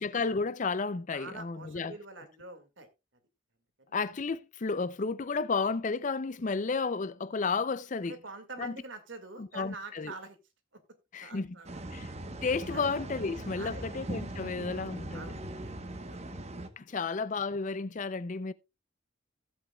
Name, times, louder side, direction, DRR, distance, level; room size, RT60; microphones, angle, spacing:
voice 1, 0.0-1.9 3.9-8.1 8.6-8.8 9.4-10.1 11.1-11.5 11.9-12.1 12.4-15.3 16.8-18.5, left 4 dB, 40° left, 0.5 m, -32 dB
voice 2, 1.1-2.9 3.8-3.9 8.1-10.4 11.2-11.8 12.7-12.9 13.5-13.9 15.1-15.8 16.1-16.2 16.9-17.0, right 3 dB, 75° right, 2.0 m, -46 dB
sound 1, 11.7-16.7, right 1 dB, 35° right, 1.0 m, -40 dB
16.0 x 8.4 x 2.3 m
head